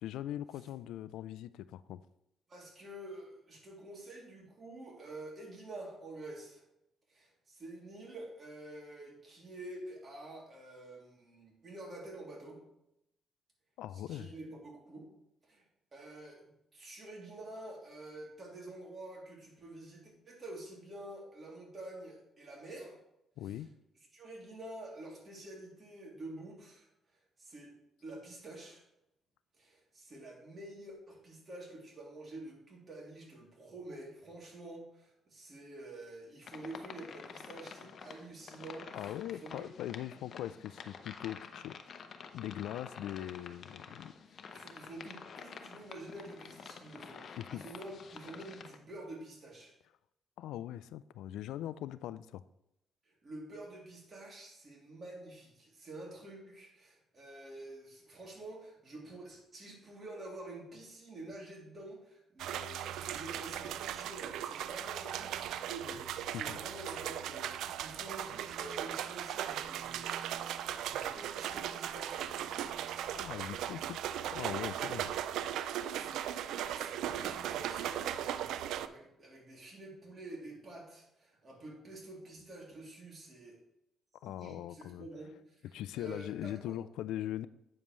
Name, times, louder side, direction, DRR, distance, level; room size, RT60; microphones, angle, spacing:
voice 1, 0.0-2.0 13.8-14.3 23.4-23.7 38.9-41.9 42.3-44.1 47.4-47.6 50.4-52.4 66.3-66.6 73.1-74.0 74.3-75.1 84.2-85.1 85.7-87.5, left 12 dB, 90° left, 15 dB, 0.3 m, -41 dB
voice 2, 2.5-6.6 7.1-12.6 14.1-15.1 15.4-16.4 16.7-23.0 23.4-23.7 24.1-27.7 28.0-28.8 29.5-39.7 44.3-49.7 53.1-70.0 70.8-72.4 75.9-83.6 84.2-86.8, right 2 dB, 40° right, -2 dB, 2.9 m, -48 dB
sound 1, 36.4-48.8, left 6 dB, 55° left, 0.7 m, -49 dB
sound 2, 62.4-78.9, right 10 dB, 85° right, 0.3 m, -38 dB
8.6 x 7.0 x 3.1 m, 0.82 s
cardioid pair, 90°, 0 cm